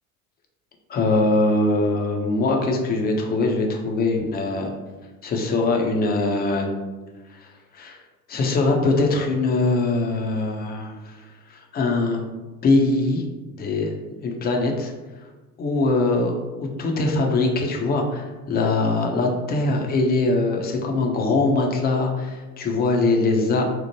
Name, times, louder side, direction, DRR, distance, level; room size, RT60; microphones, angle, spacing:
voice 1, 0.9-4.7 5.2-6.7 7.3-8.0 8.3-11.2 11.5-12.2 12.6-13.2 13.5-13.9 14.2-14.9 15.6-23.6, left 2 dB, 20° left, 2 dB, 0.4 m, -22 dB
2.9 x 2.0 x 3.0 m, 1.2 s
hypercardioid pair, 70°, 45 cm